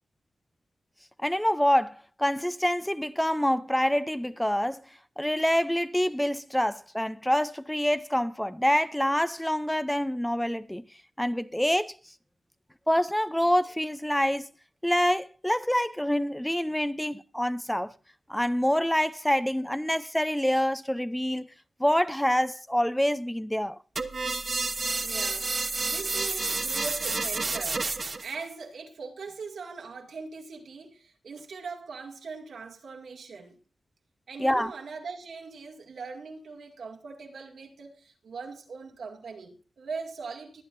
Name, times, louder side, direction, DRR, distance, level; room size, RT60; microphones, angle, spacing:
voice 1, 1.2-4.8 5.2-10.8 11.2-12.0 12.9-14.5 14.8-17.9 18.3-21.5 21.8-23.8 34.4-34.7, equal, 5° left, 0.5 m, -26 dB
sound 1, 24.0-28.4, right 3 dB, 45° right, 0.9 m, -30 dB
voice 2, 25.0-27.9 28.2-33.6 34.3-40.6, right 4 dB, 85° right, 2.1 m, -41 dB
22.0 x 9.2 x 2.6 m
wide cardioid pair, 95°, 0 cm